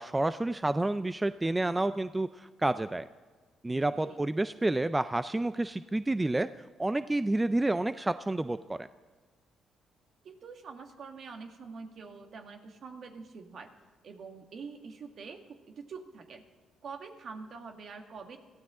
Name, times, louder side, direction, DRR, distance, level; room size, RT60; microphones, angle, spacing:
voice 1, 0.0-3.1 3.6-8.9, right 2 dB, 15° right, 12 dB, 0.4 m, -29 dB
voice 2, 10.2-13.7 14.0-16.4 16.8-18.4, right 5 dB, 60° right, 4 dB, 1.9 m, -45 dB
22.5 x 15.5 x 3.8 m, 1.4 s
cardioid pair, 90°, 0 cm